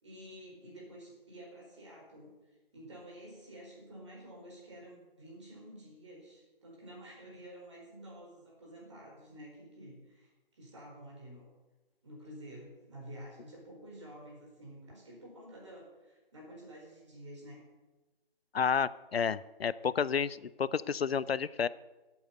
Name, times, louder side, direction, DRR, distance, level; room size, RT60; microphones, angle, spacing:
voice 1, 0.0-2.3 2.7-11.5 12.0-17.6, equal, 30° right, -2 dB, 4.5 m, -50 dB
voice 2, 18.5-21.7, left 6 dB, 90° left, 19 dB, 0.7 m, -31 dB
11.0 x 8.6 x 9.3 m, 1.1 s
hypercardioid pair, 180°, 30 cm